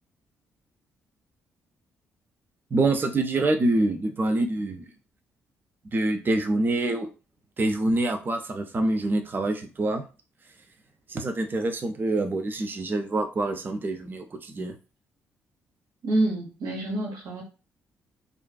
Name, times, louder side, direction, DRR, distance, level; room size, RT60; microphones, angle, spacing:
voice 1, 2.7-4.9 5.9-7.1 7.6-10.0 11.1-14.8, right 2 dB, 30° right, 6 dB, 0.5 m, -26 dB
voice 2, 16.0-17.4, right 1 dB, 60° right, -1 dB, 0.7 m, -27 dB
2.5 x 2.3 x 2.2 m, 0.32 s
figure-of-eight pair, 40°, 7 cm